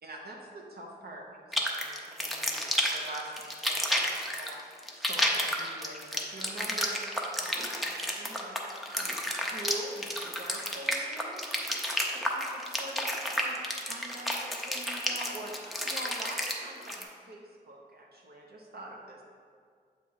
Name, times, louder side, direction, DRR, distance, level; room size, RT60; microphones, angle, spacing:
voice 1, 0.0-4.6 5.0-11.5 12.1-13.6 13.9-19.2, right 1 dB, 65° right, -1 dB, 0.7 m, -44 dB
sound 1, 1.5-17.0, equal, ahead, 0.5 m, -31 dB
7.1 x 3.0 x 4.6 m, 2.1 s
wide cardioid pair, 145°, 17 cm